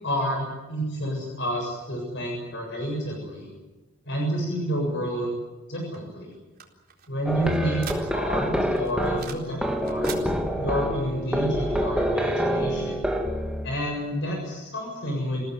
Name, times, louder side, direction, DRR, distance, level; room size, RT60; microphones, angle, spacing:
voice 1, 0.0-3.5 4.1-5.3 5.7-6.3 7.1-7.8 8.1-10.2 10.6-13.0 13.6-15.4, equal, 55° left, 0 dB, 7.3 m, -29 dB
sound 1, 5.9-8.4 8.8-9.5 9.8-10.3, right 8 dB, 45° right, 4.1 m, -41 dB
sound 2, 7.3-13.8, equal, 5° right, 2.0 m, -27 dB
29.0 x 17.5 x 9.6 m, 1.1 s
head